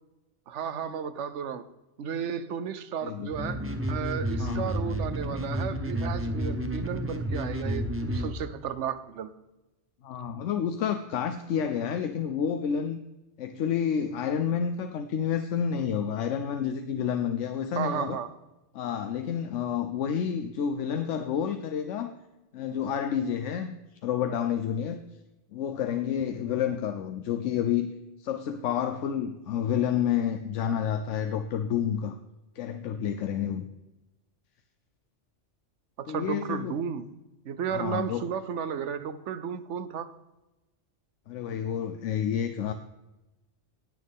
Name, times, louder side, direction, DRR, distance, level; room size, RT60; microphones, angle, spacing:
voice 1, 0.5-1.7 2.0-9.3 17.8-18.3 36.0-37.0 37.4-40.1, right 7 dB, 75° right, 13 dB, 1.1 m, -33 dB
sound 1, 3.3-8.3, equal, 10° right, 0.8 m, -31 dB
voice 2, 4.4-4.7 10.0-13.0 13.4-18.2 18.7-22.1 22.5-25.0 25.5-27.9 28.2-32.2 32.5-33.7 36.1-36.7 37.7-38.2 41.3-42.7, left 8 dB, 85° left, 8 dB, 1.0 m, -29 dB
18.5 x 6.5 x 3.6 m, 1.0 s
omnidirectional pair, 1.2 m